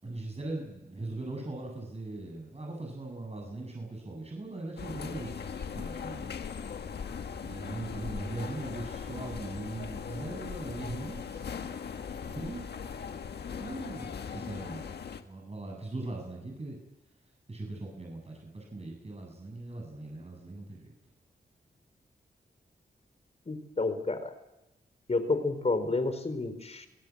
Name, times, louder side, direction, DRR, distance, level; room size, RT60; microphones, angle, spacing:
voice 1, 0.0-6.3 7.4-11.5 12.2-12.6 13.6-14.9 15.3-16.8 17.5-20.9, right 2 dB, 40° right, 0 dB, 7.9 m, -40 dB
sound 1, 4.8-15.2, left 6 dB, 80° left, 1.6 m, -39 dB
voice 2, 23.5-24.3 25.1-26.9, left 3 dB, 40° left, 10 dB, 4.3 m, -30 dB
26.0 x 17.5 x 8.6 m, 0.93 s
cardioid pair, 55°, 17 cm